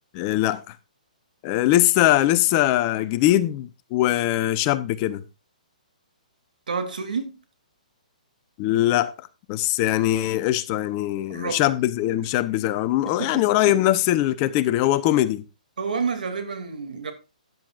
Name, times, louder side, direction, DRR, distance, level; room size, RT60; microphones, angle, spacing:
voice 1, 0.1-0.6 1.4-5.2 8.6-9.1 9.5-15.4, left 14 dB, 30° left, 0.8 m, -21 dB
voice 2, 6.7-7.4 11.3-11.6 13.2-13.7 15.8-17.1, right 5 dB, 80° right, 2.5 m, -29 dB
13.5 x 9.5 x 2.5 m
hypercardioid pair, 140°, 4 cm